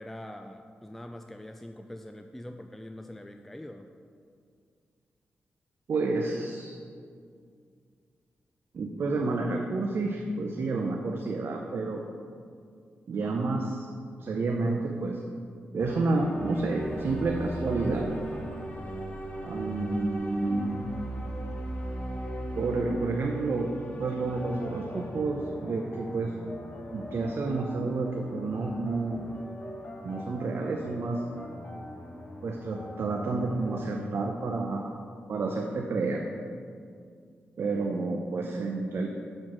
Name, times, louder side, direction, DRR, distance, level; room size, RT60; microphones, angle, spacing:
voice 1, 0.0-3.9, left 1 dB, 5° left, 6 dB, 0.3 m, -43 dB
voice 2, 5.9-6.8 8.7-12.0 13.1-13.9 14.2-15.2 15.7-18.1 19.4-20.8 22.6-23.7 24.0-26.3 26.9-29.2 30.0-31.2 32.4-34.9 35.3-36.2 37.6-39.1, right 3 dB, 65° right, 1 dB, 0.6 m, -30 dB
sound 1, 15.8-33.8, equal, 35° left, 1.2 m, -39 dB
sound 2, 16.8-22.7, equal, 10° right, 0.9 m, -49 dB
6.3 x 4.5 x 5.9 m, 2.2 s
cardioid pair, 80°, 4 cm